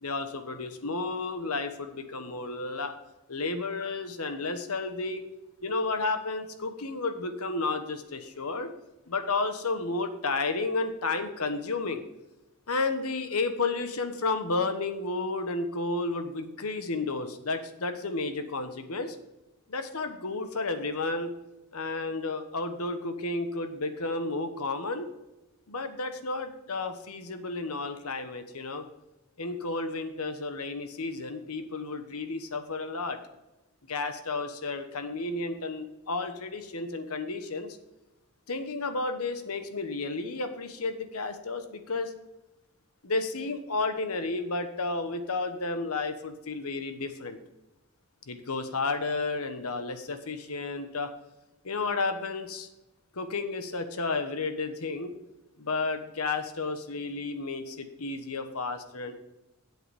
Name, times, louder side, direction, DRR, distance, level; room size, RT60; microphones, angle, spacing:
voice 1, 0.0-3.0 3.3-5.2 5.6-8.7 9.1-12.0 12.7-19.2 19.7-21.3 21.7-25.1 25.7-28.8 29.4-33.2 33.9-37.8 38.5-42.1 43.0-47.4 48.3-51.1 51.6-52.7 53.1-55.1 55.6-59.2, left 3 dB, 85° left, 8 dB, 1.2 m, -32 dB
8.0 x 7.9 x 5.1 m, 0.98 s
head